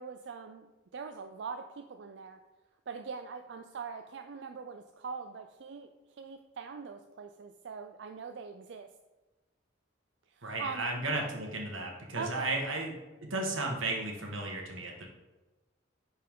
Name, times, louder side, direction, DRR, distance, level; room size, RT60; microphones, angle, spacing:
voice 1, 0.0-2.4 2.9-5.9 6.2-8.9 10.3-10.9 12.1-12.6, right 5 dB, 65° right, 6 dB, 0.4 m, -42 dB
voice 2, 10.4-12.9 13.2-15.1, right 2 dB, 85° right, 0 dB, 1.5 m, -34 dB
10.0 x 4.5 x 3.6 m, 1.1 s
head